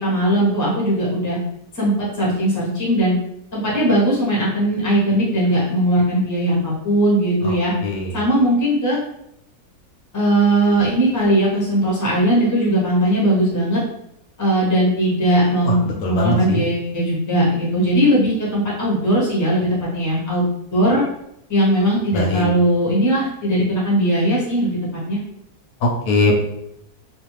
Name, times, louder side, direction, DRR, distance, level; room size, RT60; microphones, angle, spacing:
voice 1, 0.0-1.4 1.7-3.2 3.5-7.7 8.1-9.0 10.1-13.8 14.4-21.0 21.5-24.8 25.1-25.2, right 1 dB, 15° left, -6 dB, 0.6 m, -19 dB
voice 2, 16.0-16.6 22.1-22.4 26.1-26.4, left 2 dB, 80° left, -1 dB, 1.1 m, -20 dB
2.5 x 2.3 x 3.0 m, 0.79 s
omnidirectional pair, 1.7 m